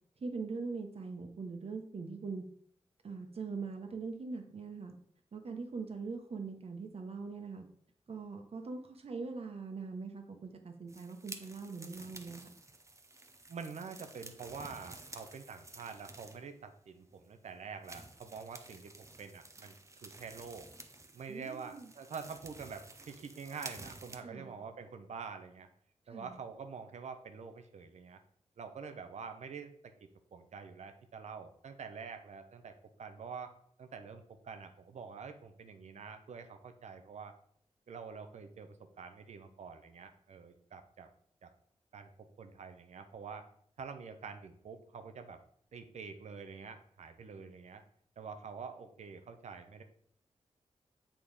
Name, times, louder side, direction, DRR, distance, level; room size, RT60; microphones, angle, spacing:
voice 1, 0.2-2.4 3.0-4.9 5.3-7.6 8.1-12.5 21.3-21.9 24.2-24.5 26.1-26.4, right 4 dB, 60° right, 4 dB, 1.3 m, -42 dB
sound 1, 10.9-16.6 17.1-17.2 17.8-24.2, right 2 dB, 25° right, 0.8 m, -52 dB
voice 2, 13.5-19.8 20.0-20.7 21.1-25.7 26.1-28.2 28.6-33.5 33.8-37.3 37.9-41.1 41.4-41.5 41.9-43.5 43.8-45.4 45.7-47.8 48.2-49.8, right 5 dB, 90° right, 7 dB, 0.9 m, -46 dB
7.6 x 4.4 x 5.0 m, 0.62 s
cardioid pair, 75°, 11 cm